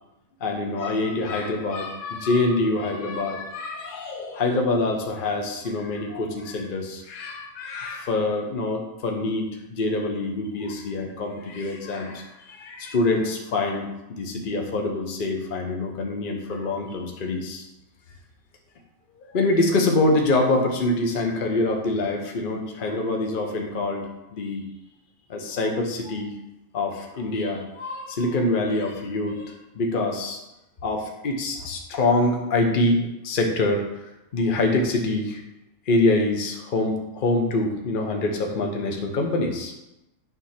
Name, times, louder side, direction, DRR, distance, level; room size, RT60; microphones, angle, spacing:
voice 1, 0.4-17.6 19.1-24.7 25.3-26.3 26.7-30.4 30.8-34.0 34.3-35.4 35.8-39.9, left 2 dB, 40° left, 2 dB, 1.0 m, -25 dB
9.4 x 3.2 x 5.8 m, 0.93 s
omnidirectional pair, 1.5 m